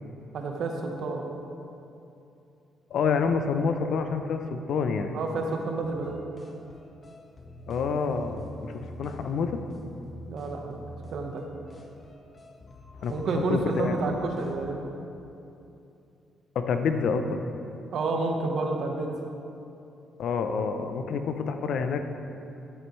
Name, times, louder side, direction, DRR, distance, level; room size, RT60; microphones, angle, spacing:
voice 1, 0.3-1.2 5.1-6.2 10.3-10.8 11.1-11.4 13.1-14.8 17.9-19.2, right 3 dB, 65° right, 2 dB, 1.2 m, -29 dB
voice 2, 2.9-5.1 7.7-9.6 13.0-13.1 13.5-14.0 16.5-17.4 20.2-22.0, left 5 dB, 70° left, 7 dB, 0.6 m, -27 dB
sound 1, 5.8-14.7, equal, 30° left, 1.0 m, -46 dB
11.0 x 9.8 x 3.2 m, 2.8 s
cardioid pair, 90°, 0 cm